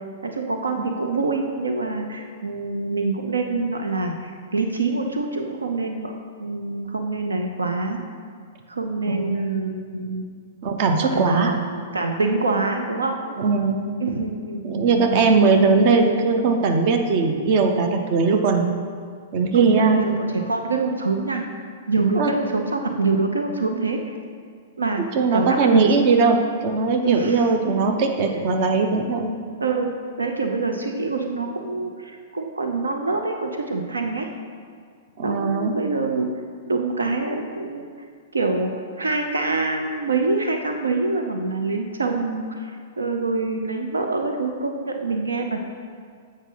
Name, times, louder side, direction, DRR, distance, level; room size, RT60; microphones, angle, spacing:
voice 1, 0.2-6.1 6.4-8.0 8.7-10.2 11.0-11.6 11.9-13.2 14.0-15.3 19.5-21.5 21.9-24.2 24.8-25.0 25.3-25.9 27.0-27.8 29.6-34.3 35.2-36.3 36.6-37.9 38.3-38.7 39.0-45.6, right 3 dB, 80° right, 4 dB, 0.6 m, -25 dB
voice 2, 10.6-11.5 13.4-13.9 14.6-18.7 19.3-20.0 22.2-22.3 25.1-29.4 35.2-35.7, right 4 dB, 45° right, 5 dB, 0.8 m, -20 dB
8.1 x 5.2 x 5.6 m, 2.1 s
figure-of-eight pair, 105°, 0 cm